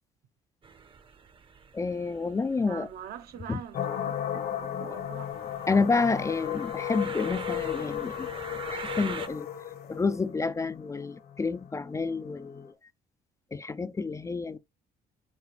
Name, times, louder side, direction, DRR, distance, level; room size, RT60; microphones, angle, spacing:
sound 1, 0.6-9.3, right 5 dB, 30° right, 0.7 m, -44 dB
voice 1, 1.7-2.9 3.5-3.6 5.7-8.3 8.7-9.5 9.9-12.7 13.5-14.6, left 4 dB, 20° left, 0.4 m, -29 dB
voice 2, 2.7-5.5, right 9 dB, 65° right, 0.9 m, -44 dB
sound 2, 3.7-12.6, left 11 dB, 65° left, 1.2 m, -35 dB
9.6 x 4.5 x 3.2 m
cardioid pair, 110°, 17 cm